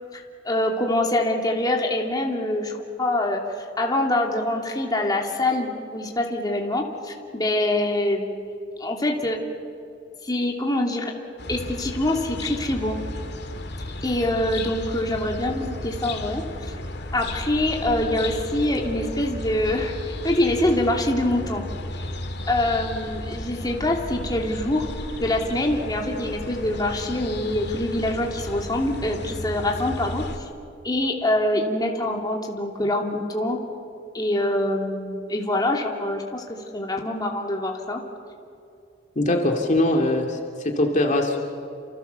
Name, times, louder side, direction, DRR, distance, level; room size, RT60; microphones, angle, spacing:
voice 1, 0.1-3.4 3.8-8.4 8.8-9.4 10.2-11.1 11.5-13.0 14.0-16.8 17.1-21.6 22.5-24.9 25.2-30.2 30.8-33.6 34.1-38.0, left 1 dB, 20° left, 0 dB, 2.9 m, -25 dB
sound 1, 11.4-30.4, left 1 dB, 60° left, 2.3 m, -34 dB
voice 2, 39.2-41.4, left 1 dB, 40° left, 1 dB, 2.6 m, -22 dB
29.0 x 28.0 x 7.0 m, 2.6 s
head